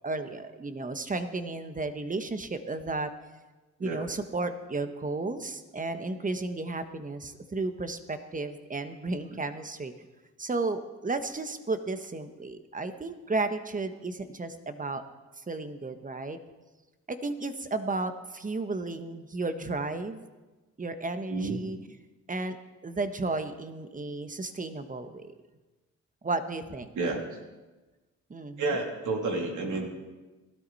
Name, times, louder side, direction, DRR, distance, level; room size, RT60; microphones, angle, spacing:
voice 1, 0.0-3.1 3.8-9.9 10.4-15.0 15.4-16.4 17.1-20.2 20.8-21.8 22.3-22.6 22.8-25.3 26.2-26.9 28.3-28.8, right 3 dB, 25° right, 9 dB, 1.3 m, -33 dB
voice 2, 28.6-29.9, right 3 dB, 65° right, 1 dB, 3.2 m, -30 dB
18.5 x 13.0 x 4.2 m, 1.2 s
cardioid pair, 80°, 32 cm